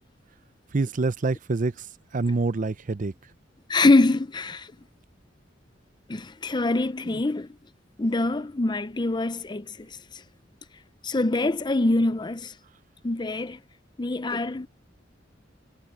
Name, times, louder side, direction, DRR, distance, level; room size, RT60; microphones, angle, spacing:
voice 1, 0.7-3.1 7.1-7.2, right 3 dB, 45° right, 0.6 m, -26 dB
voice 2, 3.7-4.7 6.1-7.5 8.0-9.7 11.0-12.5 13.0-13.6 14.0-14.7, left 2 dB, 25° left, 0.6 m, -24 dB
head